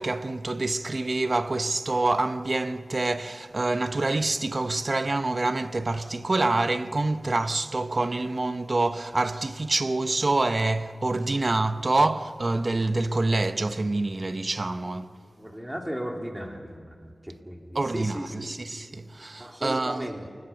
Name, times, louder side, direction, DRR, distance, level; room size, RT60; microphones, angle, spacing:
voice 1, 0.0-15.1 17.7-20.1, right 2 dB, 50° right, 1.0 m, -26 dB
voice 2, 15.4-18.5 19.4-20.2, equal, 10° right, 3.5 m, -36 dB
28.5 x 20.5 x 7.2 m
cardioid pair, 45°, 0 cm